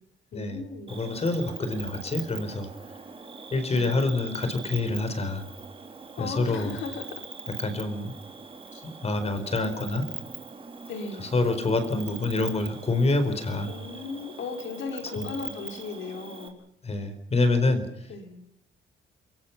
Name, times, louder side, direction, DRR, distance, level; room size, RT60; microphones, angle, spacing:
voice 1, 0.3-0.9 3.7-3.9 6.2-7.1 8.7-8.8 10.9-11.3 13.6-16.5 18.1-18.4, left 4 dB, 80° left, 5 dB, 5.3 m, -36 dB
voice 2, 0.9-2.7 3.5-5.5 6.2-6.7 7.6-8.1 8.8-10.0 11.2-13.7 15.2-15.3 16.8-18.1, left 2 dB, 30° left, 10 dB, 4.3 m, -27 dB
Cricket, 0.9-16.5, right 4 dB, 30° right, 3.7 m, -42 dB
28.5 x 23.0 x 5.9 m, 0.70 s
cardioid pair, 145°, 19 cm